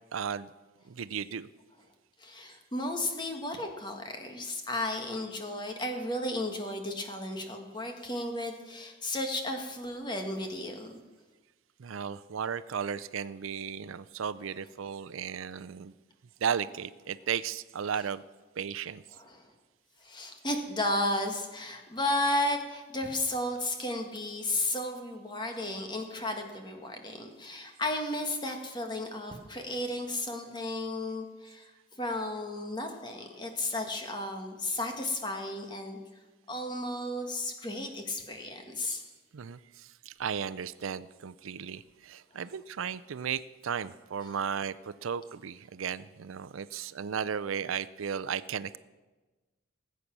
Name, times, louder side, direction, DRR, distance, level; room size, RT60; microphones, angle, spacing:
voice 1, 0.1-0.5 0.8-1.5 11.8-15.9 16.4-18.2 18.6-19.0 39.3-48.8, right 7 dB, 80° right, 16 dB, 0.5 m, -35 dB
voice 2, 2.2-10.9 19.1-19.4 20.0-31.7 32.0-36.0 36.5-39.0, left 1 dB, 20° left, 4 dB, 1.6 m, -33 dB
19.0 x 8.4 x 6.0 m, 1.2 s
head